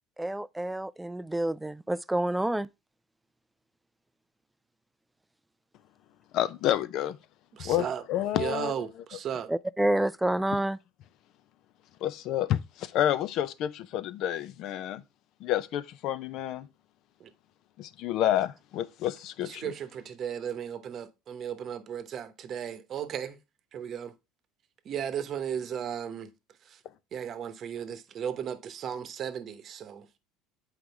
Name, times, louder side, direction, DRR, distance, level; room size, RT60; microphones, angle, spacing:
voice 1, 0.2-2.7 9.5-10.8, right 1 dB, 5° right, 0.3 m, -28 dB
voice 2, 6.3-7.2 7.6-8.7 12.0-15.0 15.4-16.7 17.8-19.7, left 12 dB, 55° left, 0.6 m, -29 dB
voice 3, 7.5-8.0 8.3-9.5 17.2-17.3 19.4-23.4 23.7-24.1 24.8-26.3 26.6-26.8 27.1-30.1, right 8 dB, 40° right, 0.9 m, -35 dB
8.0 x 4.9 x 3.3 m
cardioid pair, 130°, 0 cm